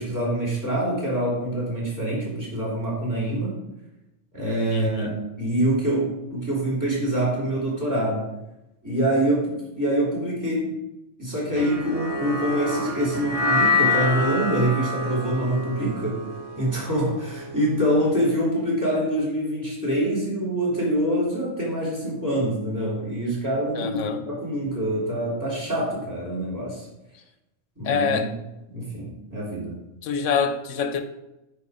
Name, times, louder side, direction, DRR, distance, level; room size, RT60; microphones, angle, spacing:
voice 1, 0.0-3.6 4.3-8.2 8.8-10.8 11.2-16.3 16.6-26.9 27.8-28.3 28.7-29.8, right 1 dB, 15° right, -5 dB, 3.5 m, -25 dB
voice 2, 4.7-5.1 23.7-24.2 27.8-28.3 30.0-31.0, left 6 dB, 75° left, 9 dB, 1.1 m, -25 dB
sound 1, 11.6-17.9, left 2 dB, 30° right, 1.0 m, -27 dB
9.6 x 4.9 x 5.1 m, 0.93 s
omnidirectional pair, 1.3 m